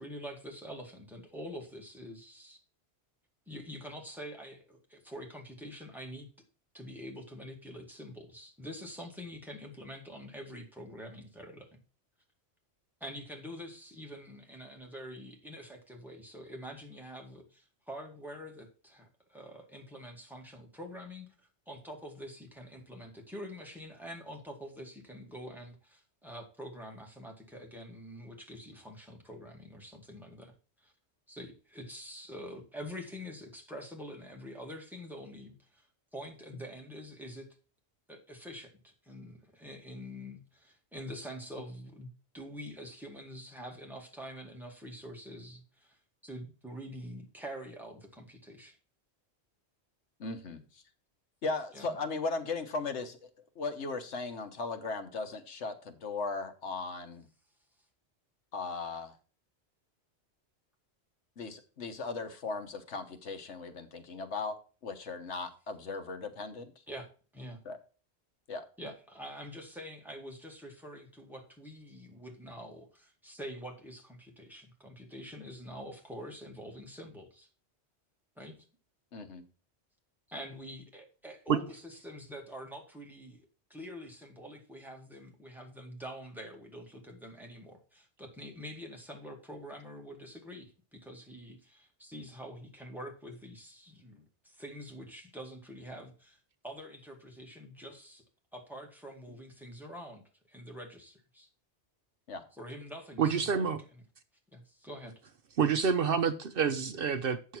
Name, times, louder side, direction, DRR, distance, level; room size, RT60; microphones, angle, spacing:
voice 1, 0.0-2.6 3.5-6.3 6.7-11.8 13.0-21.3 21.7-30.9 31.3-35.9 36.1-37.5 38.1-46.0 46.2-48.8 51.7-51.9 66.9-67.1 67.3-67.6 68.8-77.5 78.4-78.6 80.3-98.2 98.5-101.5 102.5-103.7 104.5-105.2, equal, ahead, 2.0 m, -46 dB
voice 2, 50.2-50.8 51.4-53.3 53.6-57.3 58.5-59.1 61.4-64.6 64.8-66.7 67.6-67.8 68.5-68.6 79.1-79.4 102.3-102.4, left 3 dB, 80° left, 1.4 m, -37 dB
voice 3, 103.2-103.8 105.6-107.6, right 6 dB, 60° right, 0.8 m, -28 dB
8.4 x 6.4 x 4.5 m
omnidirectional pair, 1.1 m